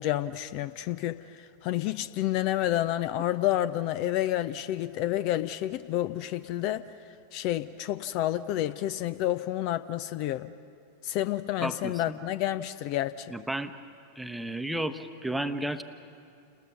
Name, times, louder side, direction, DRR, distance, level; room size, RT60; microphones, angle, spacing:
voice 1, 0.0-6.9 7.3-10.5 11.0-13.3, left 13 dB, 45° left, 15 dB, 0.5 m, -29 dB
voice 2, 11.6-12.2 13.3-13.7 14.2-15.8, right 1 dB, 5° right, 9 dB, 1.0 m, -33 dB
29.0 x 20.0 x 6.2 m, 2.4 s
figure-of-eight pair, 90°, 0 cm